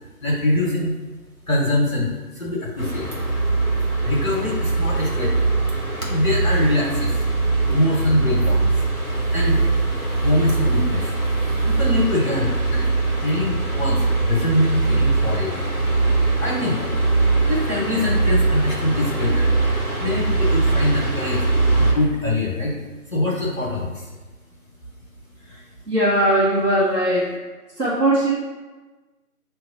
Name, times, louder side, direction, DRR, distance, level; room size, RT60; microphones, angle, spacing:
voice 1, 0.2-0.9 1.5-3.2 4.0-5.5 6.1-7.2 7.7-8.8 9.3-9.6 10.2-11.2 11.6-12.8 13.2-15.6 16.4-16.8 17.5-19.5 20.0-21.5 21.8-22.8 23.1-24.1, left 1 dB, 60° left, -4 dB, 1.0 m, -23 dB
sound 1, 2.8-21.9, right 3 dB, 65° right, 1.2 m, -21 dB
voice 2, 25.9-27.4 27.8-28.3, right 1 dB, 85° right, -8 dB, 1.4 m, -19 dB
7.1 x 2.9 x 2.5 m, 1.3 s
figure-of-eight pair, 170°, 46 cm